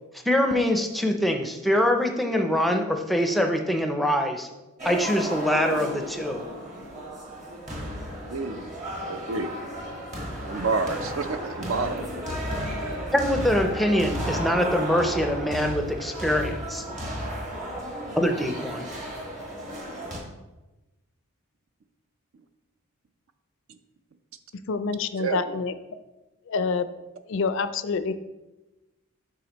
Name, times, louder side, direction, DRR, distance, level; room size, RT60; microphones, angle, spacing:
voice 1, 0.2-4.5 4.8-6.5 13.1-16.8 18.2-18.9, equal, ahead, 4 dB, 0.5 m, -24 dB
sound 1, 4.8-20.2, equal, 35° right, 1.3 m, -33 dB
voice 2, 8.3-8.7 9.1-9.5 10.5-12.1 25.2-25.4, right 4 dB, 65° right, 9 dB, 0.5 m, -28 dB
voice 3, 24.7-25.7 26.5-26.9 27.3-28.1, left 4 dB, 55° left, 12 dB, 0.4 m, -27 dB
8.3 x 5.7 x 3.0 m, 1.1 s
head